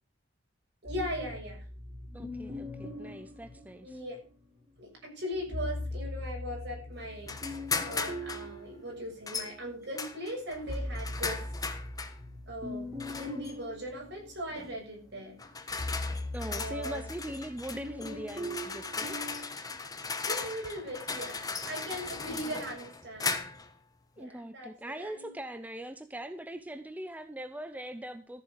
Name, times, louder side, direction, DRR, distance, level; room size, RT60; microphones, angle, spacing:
voice 1, 0.8-1.6 3.8-4.2 4.8-11.4 12.5-15.4 16.5-17.0 17.3-17.4 20.2-21.4 21.6-23.4 24.2-24.7 25.0-25.3, equal, 60° right, 0 dB, 7.0 m, -39 dB
sound 1, 0.9-4.4 5.3-9.8 10.2-19.5, left 1 dB, 25° right, 6.4 m, -41 dB
voice 2, 2.1-4.0 16.3-19.2 22.3-22.6 24.2-28.4, right 1 dB, 10° right, 9 dB, 0.6 m, -41 dB
sound 2, 7.3-8.5 9.3-9.5 10.0-12.2 13.0-13.5 14.6-14.8 15.4-23.7, left 4 dB, 20° left, 1.2 m, -37 dB
14.0 x 7.4 x 6.4 m, 0.38 s
head